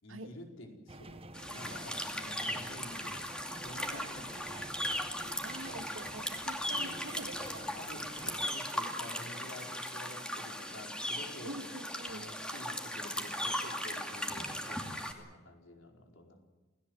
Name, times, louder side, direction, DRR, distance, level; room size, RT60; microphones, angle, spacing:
voice 1, 0.0-3.3 3.6-4.6 7.7-11.5 12.1-16.4, left 1 dB, 75° left, 2 dB, 4.8 m, -50 dB
sound 1, 0.9-8.5, right 2 dB, 30° right, 1.1 m, -50 dB
sound 2, 1.3-15.1, equal, 5° left, 2.5 m, -38 dB
Cough, 2.7-3.1 3.9-4.6 5.8-6.1 7.3-8.4 11.5-12.3 13.7-13.8, left 1 dB, 25° left, 2.6 m, -55 dB
voice 2, 3.9-4.3 5.4-7.7 11.4-12.3, right 1 dB, 80° right, 7 dB, 2.0 m, -46 dB
28.5 x 17.5 x 8.1 m, 1.2 s
head